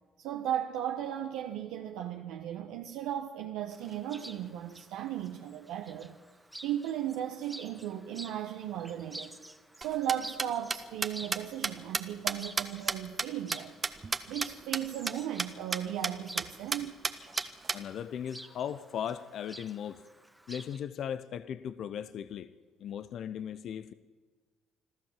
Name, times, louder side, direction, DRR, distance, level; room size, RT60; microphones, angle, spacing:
voice 1, 0.2-6.2 6.6-9.4 9.8-13.7 14.3-16.9, right 11 dB, 80° right, 1.3 m, -36 dB
Chirp tweet, 3.7-20.8, right 1 dB, 10° right, 1.7 m, -51 dB
sound 1, 9.8-14.5 14.7-14.8 15.1-15.2 15.4-15.5 15.7-16.1 16.4-16.5 16.7-17.8, right 4 dB, 35° right, 1.4 m, -31 dB
voice 2, 17.7-20.0 20.5-22.5 22.8-23.9, left 9 dB, 60° left, 0.8 m, -37 dB
26.5 x 13.0 x 7.5 m
hypercardioid pair, 60°, 0 cm